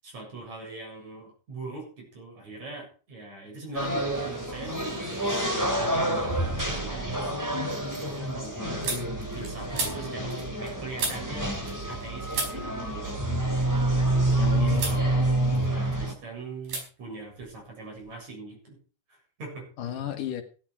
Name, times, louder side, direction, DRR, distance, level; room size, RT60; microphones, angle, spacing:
voice 1, 0.0-11.5 11.9-13.3 14.2-15.2 15.6-18.8 19.1-19.7, right 3 dB, 60° right, 0 dB, 9.0 m, -42 dB
sound 1, 3.7-16.1, right 1 dB, 5° right, 2.8 m, -28 dB
sound 2, 6.1-6.6 7.0-12.0 12.3-14.3 14.7-15.0 15.4-16.1 16.6-16.8 17.1-18.2, right 3 dB, 85° right, 6.6 m, -36 dB
voice 2, 14.4-15.7 19.8-20.4, left 9 dB, 85° left, 7 dB, 3.3 m, -34 dB
17.0 x 10.5 x 4.9 m, 0.37 s
omnidirectional pair, 3.6 m